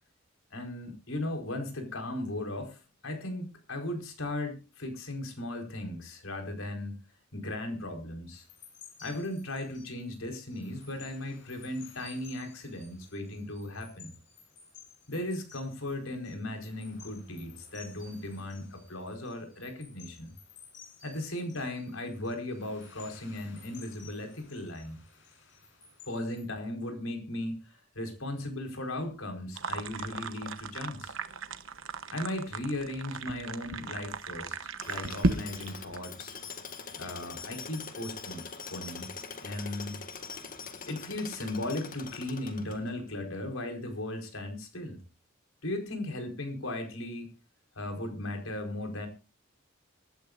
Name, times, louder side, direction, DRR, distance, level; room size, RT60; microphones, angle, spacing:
voice 1, 0.5-7.0 7.3-8.5 9.0-14.1 15.1-20.3 21.0-25.0 26.1-31.2 32.1-36.4 37.0-38.4 38.7-39.1 39.4-40.0 40.9-45.0 45.6-47.3 47.8-49.1, left 1 dB, 90° left, 4 dB, 4.4 m, -37 dB
sound 1, 8.3-26.4, left 5 dB, 65° left, 6.7 m, -55 dB
sound 2, 29.5-36.0, right 3 dB, 70° right, 1.1 m, -35 dB
Tools, 34.8-43.1, left 5 dB, 45° left, 1.8 m, -43 dB
24.5 x 12.0 x 2.5 m, 0.31 s
head